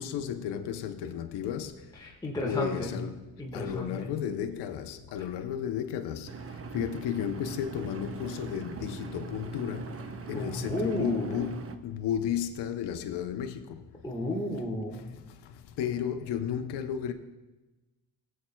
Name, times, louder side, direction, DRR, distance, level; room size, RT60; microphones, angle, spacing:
voice 1, 0.0-2.0 2.4-13.8 14.9-17.1, left 9 dB, 70° left, 0.8 m, -34 dB
voice 2, 2.0-2.9 3.4-4.1 10.3-11.4 14.0-15.0, left 1 dB, 10° left, 1.4 m, -33 dB
Engine, 6.3-11.8, right 4 dB, 30° right, 0.7 m, -40 dB
18.5 x 7.5 x 2.2 m
supercardioid pair, 70°, 43 cm